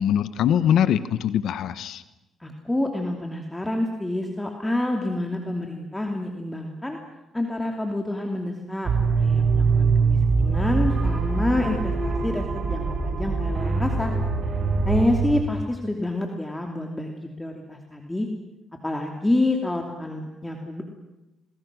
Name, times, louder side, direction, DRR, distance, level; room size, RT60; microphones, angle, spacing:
voice 1, 0.0-2.0, left 9 dB, 75° left, 14 dB, 1.1 m, -22 dB
voice 2, 2.4-7.0 7.3-14.1 14.8-18.3 18.8-20.8, left 1 dB, 10° left, 2 dB, 2.8 m, -28 dB
sound 1, 8.9-15.4, right 4 dB, 55° right, 6.6 m, -23 dB
29.0 x 22.5 x 6.2 m, 0.98 s
cardioid pair, 90°, 0 cm